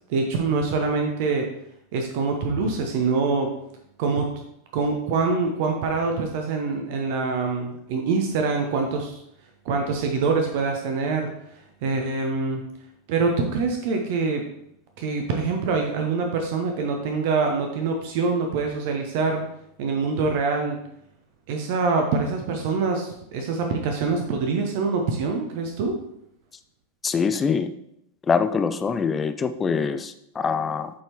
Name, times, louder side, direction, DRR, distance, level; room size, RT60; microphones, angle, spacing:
voice 1, 0.1-1.5 1.9-3.5 4.0-4.3 4.7-9.2 9.6-11.3 11.8-12.6 13.1-14.5 15.0-19.4 19.8-20.8 21.5-26.0, right 4 dB, 50° right, 3 dB, 0.8 m, -25 dB
voice 2, 27.0-27.7 28.3-30.9, left 5 dB, 20° left, 11 dB, 0.4 m, -24 dB
8.5 x 4.2 x 3.0 m, 0.77 s
figure-of-eight pair, 85°, 0 cm